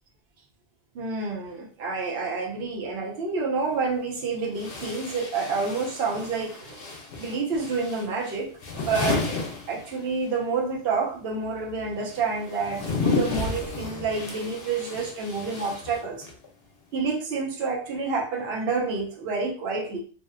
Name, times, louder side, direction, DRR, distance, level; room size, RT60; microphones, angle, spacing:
voice 1, 0.9-6.8 7.2-9.4 9.7-16.3 16.9-20.0, right 4 dB, 65° right, 0 dB, 0.8 m, -29 dB
sound 1, 3.6-3.7 4.5-10.3 10.6-16.5, left 3 dB, 65° left, 0.8 m, -32 dB
2.6 x 2.0 x 2.4 m, 0.42 s
omnidirectional pair, 1.2 m